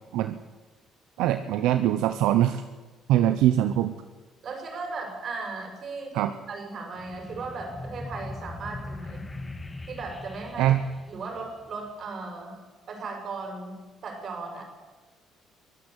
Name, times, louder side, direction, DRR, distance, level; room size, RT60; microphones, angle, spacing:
voice 1, 1.2-2.6 3.1-3.9 6.1-6.3 10.6-10.8, right 12 dB, 85° right, 9 dB, 0.9 m, -22 dB
voice 2, 4.4-9.3 9.9-10.7 11.1-12.6 12.9-14.6, right 3 dB, 50° right, 4 dB, 6.5 m, -37 dB
sound 1, 6.9-11.9, left 2 dB, 20° left, 1.8 m, -40 dB
23.5 x 14.0 x 8.3 m, 1.2 s
cardioid pair, 85°, 0 cm